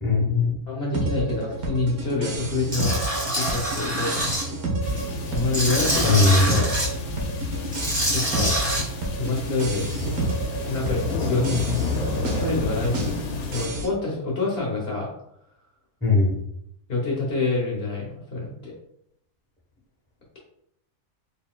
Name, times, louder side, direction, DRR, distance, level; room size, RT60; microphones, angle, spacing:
voice 1, 0.0-0.6 6.0-6.5 11.4-11.8 16.0-16.4, left 3 dB, 10° left, -3 dB, 0.7 m, -20 dB
voice 2, 0.7-3.0 3.2-4.6 5.3-6.7 8.1-8.6 9.2-10.1 10.7-11.5 12.1-15.1 16.9-18.7, left 3 dB, 50° left, -3 dB, 1.0 m, -27 dB
sound 1, 0.9-13.9, right 2 dB, 75° right, 1.3 m, -31 dB
Tools, 2.7-4.4 4.9-6.9 7.6-8.8, equal, 25° right, 1.5 m, -26 dB
sound 2, 4.8-13.7, left 3 dB, 85° left, 1.1 m, -30 dB
3.9 x 3.7 x 2.2 m, 0.76 s
omnidirectional pair, 1.6 m